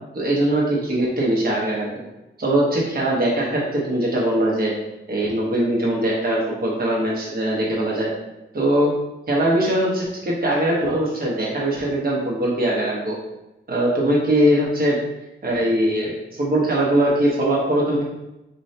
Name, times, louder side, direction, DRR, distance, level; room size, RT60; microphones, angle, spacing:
voice 1, 0.1-2.0 2.4-4.7 5.1-8.1 8.5-8.9 9.3-13.2 13.7-15.0 15.4-18.0, right 1 dB, 50° right, -4 dB, 1.1 m, -21 dB
4.4 x 2.8 x 3.3 m, 0.95 s
wide cardioid pair, 155°, 20 cm